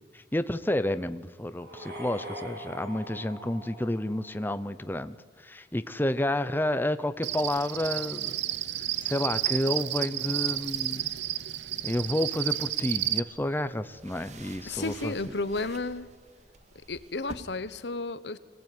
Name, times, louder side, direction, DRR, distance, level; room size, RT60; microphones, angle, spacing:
voice 1, 0.1-8.4 9.0-11.1 11.8-15.1, left 1 dB, 10° left, 12 dB, 0.7 m, -30 dB
sound 1, 1.5-4.6, equal, 60° right, 7.9 m, -42 dB
Cricket, 7.2-13.2, right 14 dB, 85° right, 0.9 m, -31 dB
sound 2, 10.6-17.3, right 2 dB, 40° right, 2.0 m, -51 dB
voice 2, 14.6-16.1 16.9-18.4, left 3 dB, 70° left, 15 dB, 1.1 m, -32 dB
25.5 x 18.0 x 9.5 m, 1.5 s
head